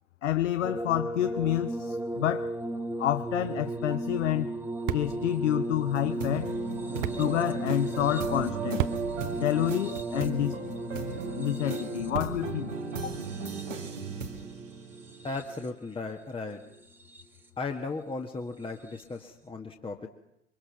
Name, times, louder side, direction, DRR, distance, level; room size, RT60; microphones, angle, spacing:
voice 1, 0.2-2.5 3.0-4.5 4.9-6.5 7.2-8.9 9.4-10.6 11.4-12.7 13.0-13.1, left 13 dB, 75° left, 0.7 m, -28 dB
sound 1, 0.6-15.9 16.7-17.5 18.9-19.0, right 1 dB, 5° right, 1.5 m, -36 dB
sound 2, 3.6-12.7, right 12 dB, 55° right, 1.1 m, -40 dB
sound 3, 5.9-15.6, right 5 dB, 85° right, 2.6 m, -37 dB
voice 2, 15.2-16.6 17.6-20.1, left 3 dB, 15° left, 1.5 m, -36 dB
23.5 x 23.5 x 5.9 m
figure-of-eight pair, 75°, 37 cm